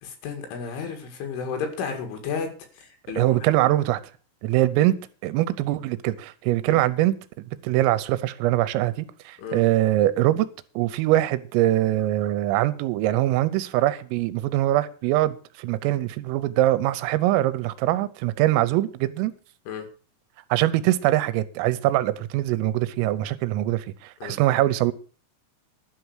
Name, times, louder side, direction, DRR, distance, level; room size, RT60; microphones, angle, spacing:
voice 1, 0.0-2.5 2.8-3.5 6.7-6.8 9.4-9.6 19.7-19.9 24.2-24.4, left 5 dB, 70° left, 4.3 m, -32 dB
voice 2, 3.2-4.0 4.4-5.0 5.2-7.1 7.6-10.5 10.8-19.3 20.5-24.9, right 15 dB, 85° right, 3.4 m, -23 dB
11.5 x 5.9 x 8.0 m
omnidirectional pair, 5.9 m